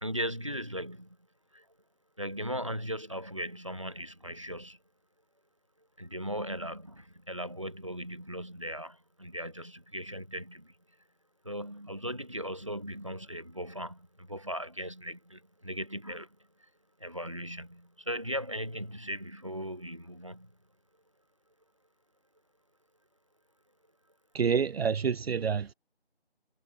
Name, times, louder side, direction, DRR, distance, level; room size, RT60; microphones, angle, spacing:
voice 1, 0.0-1.1 1.5-1.6 2.2-4.8 6.0-10.7 11.4-16.3 17.0-20.5, equal, 30° right, 1.0 m, -38 dB
voice 2, 24.3-25.7, right 6 dB, 75° right, 0.5 m, -28 dB
figure-of-eight pair, 180°, 31 cm